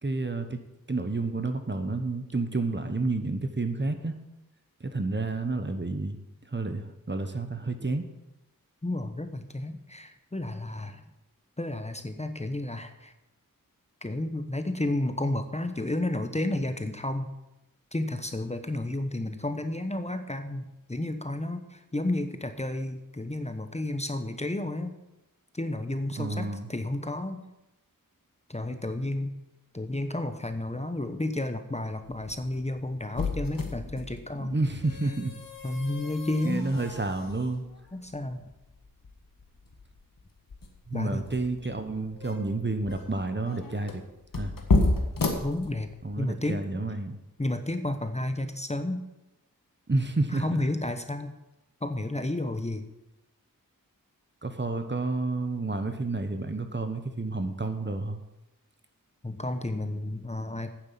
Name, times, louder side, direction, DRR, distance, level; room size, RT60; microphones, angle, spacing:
voice 1, 0.0-4.2 4.8-8.0 26.2-26.7 34.4-35.3 36.4-37.6 40.9-44.0 44.3-44.5 46.0-47.2 49.9-50.6 54.4-58.2, right 3 dB, 30° right, 7 dB, 1.2 m, -30 dB
voice 2, 8.8-11.0 11.6-13.1 14.0-17.3 17.9-24.9 25.5-27.4 28.5-29.3 29.7-34.6 35.6-36.7 37.9-38.4 40.9-41.3 45.4-45.9 46.2-46.6 47.4-49.0 50.3-51.3 51.8-52.9 59.2-60.7, left 1 dB, 20° left, 8 dB, 1.0 m, -31 dB
sound 1, 32.0-46.2, left 3 dB, 70° left, 1.7 m, -33 dB
9.5 x 7.5 x 7.6 m, 0.93 s
cardioid pair, 50°, 35 cm